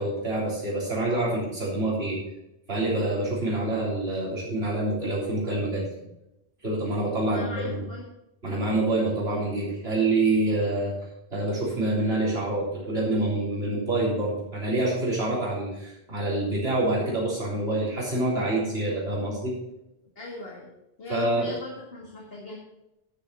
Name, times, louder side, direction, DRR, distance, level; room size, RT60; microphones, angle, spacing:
voice 1, 0.0-2.2 2.7-5.8 6.6-7.8 8.4-10.9 11.3-19.5 21.1-21.5, right 2 dB, 90° right, -6 dB, 4.1 m, -26 dB
voice 2, 7.2-8.1 20.2-20.7 21.0-22.6, left 2 dB, 70° left, -2 dB, 2.2 m, -39 dB
11.5 x 7.2 x 5.7 m, 0.89 s
omnidirectional pair, 1.0 m